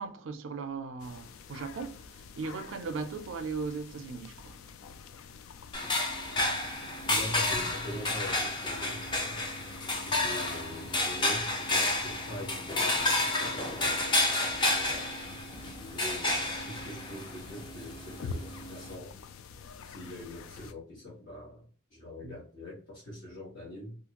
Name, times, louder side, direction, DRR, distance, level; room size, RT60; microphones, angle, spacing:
voice 1, 0.0-4.6 22.2-22.4, right 4 dB, 70° right, 0.4 m, -38 dB
sound 1, 1.0-20.7, left 5 dB, 90° left, 0.3 m, -48 dB
sound 2, 5.7-19.0, left 2 dB, 25° left, 0.4 m, -31 dB
voice 2, 7.0-9.4 10.0-15.1 15.7-19.1 19.8-24.0, left 1 dB, 60° left, 1.2 m, -43 dB
2.6 x 2.5 x 2.8 m
head